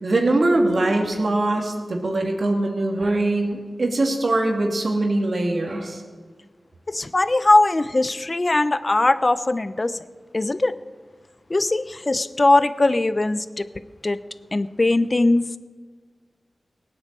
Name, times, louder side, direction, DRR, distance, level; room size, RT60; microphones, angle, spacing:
voice 1, 0.0-6.0, right 2 dB, 70° right, 2 dB, 2.8 m, -22 dB
voice 2, 6.9-10.0 10.3-10.7 11.5-13.7 14.0-14.2 14.5-15.6, left 2 dB, 40° left, 13 dB, 0.8 m, -20 dB
18.0 x 9.6 x 7.7 m, 1.5 s
cardioid pair, 45°, 0 cm